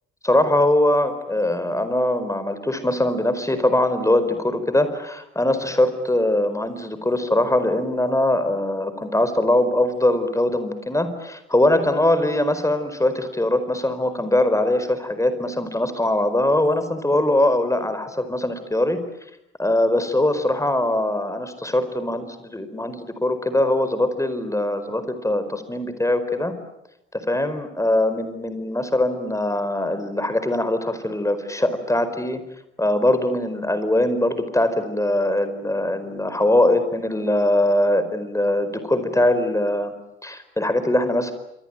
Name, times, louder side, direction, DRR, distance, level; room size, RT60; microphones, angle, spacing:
voice 1, 0.2-19.0 19.6-26.5 27.1-32.4 32.8-39.9 40.2-41.3, left 1 dB, 10° left, 11 dB, 4.7 m, -22 dB
27.5 x 24.0 x 9.1 m, 0.83 s
figure-of-eight pair, 50°, 30 cm